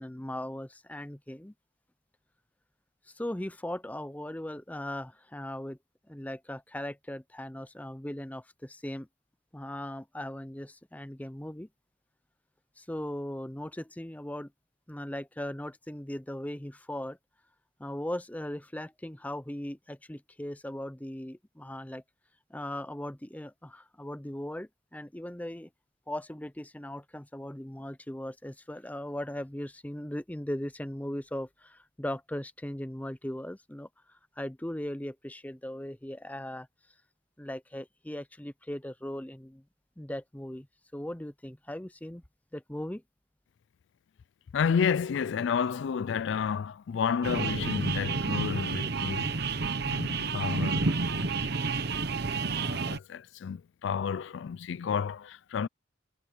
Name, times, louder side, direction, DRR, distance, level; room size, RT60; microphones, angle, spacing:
voice 1, 0.0-1.5 3.1-5.8 6.1-9.1 9.5-11.7 12.8-14.5 14.9-17.2 17.8-22.0 22.5-25.7 26.1-36.7 37.4-39.6 40.0-40.7 40.9-42.2 42.5-43.0, left 1 dB, 10° left, 0.6 m, -38 dB
voice 2, 44.5-49.3 49.9-51.5 52.6-55.7, left 6 dB, 70° left, 0.3 m, -31 dB
sound 1, 47.2-53.0, right 4 dB, 55° right, 1.0 m, -30 dB
head